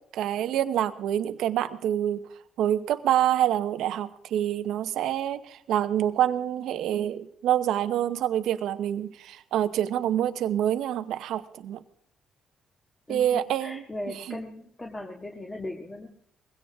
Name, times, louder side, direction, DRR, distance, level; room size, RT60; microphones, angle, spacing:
voice 1, 0.1-2.2 2.6-11.8 13.1-13.8, right 11 dB, 85° right, 11 dB, 0.8 m, -26 dB
voice 2, 13.1-16.1, left 1 dB, 20° left, 1 dB, 2.0 m, -38 dB
21.0 x 16.5 x 3.5 m, 0.65 s
cardioid pair, 90°, 0 cm